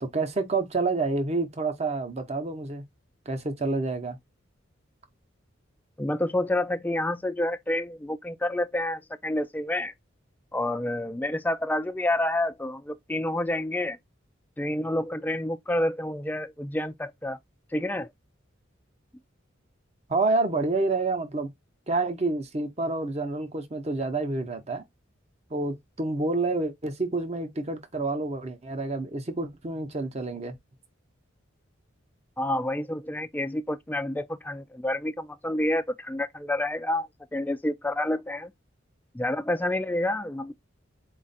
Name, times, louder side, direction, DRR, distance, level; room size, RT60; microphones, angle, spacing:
voice 1, 0.0-2.8 3.3-4.2 20.1-21.5 21.9-24.8 25.5-30.6, right 3 dB, 35° right, 0.8 m, -28 dB
voice 2, 6.0-9.9 10.5-14.0 14.6-17.4 17.7-18.1 32.4-38.5 39.1-40.5, left 1 dB, 10° left, 0.4 m, -28 dB
4.2 x 2.4 x 4.0 m
head